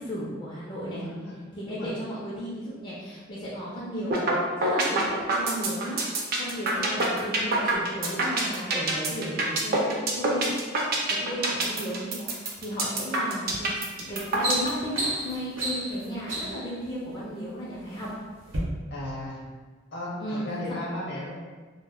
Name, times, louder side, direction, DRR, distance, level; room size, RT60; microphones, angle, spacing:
voice 1, 0.0-1.0 1.5-4.2 4.6-10.5 11.1-13.7 14.0-18.1 20.2-20.6, equal, 25° left, -7 dB, 0.4 m, -34 dB
voice 2, 0.9-1.3 1.7-1.9 18.9-19.4 19.9-21.3, left 1 dB, 55° left, -5 dB, 0.7 m, -35 dB
sound 1, 4.1-4.3 4.6-14.7, right 3 dB, 50° right, 0.4 m, -25 dB
sound 2, 13.5-13.7 14.1-16.7 17.5-18.1 18.4-18.6, right 1 dB, 85° right, 0.8 m, -31 dB
2.1 x 2.0 x 3.5 m, 1.4 s
head